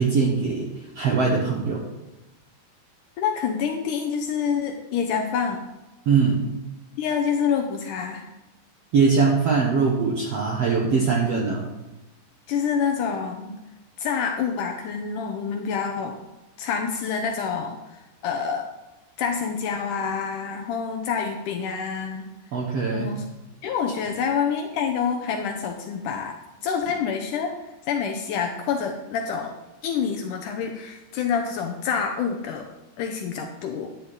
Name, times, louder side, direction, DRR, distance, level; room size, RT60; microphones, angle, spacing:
voice 1, 0.0-1.8 6.1-6.4 8.9-11.7 22.5-23.1, right 5 dB, 85° right, -1 dB, 1.4 m, -22 dB
voice 2, 3.2-5.7 7.0-8.3 12.5-13.5 14.0-16.2 16.6-17.8 18.2-18.7 19.2-22.3 22.9-23.2 23.6-26.4 26.6-27.6 27.9-29.6 29.8-32.7 33.0-33.9, left 6 dB, 85° left, 4 dB, 1.8 m, -27 dB
12.0 x 9.5 x 4.0 m, 1.1 s
omnidirectional pair, 4.9 m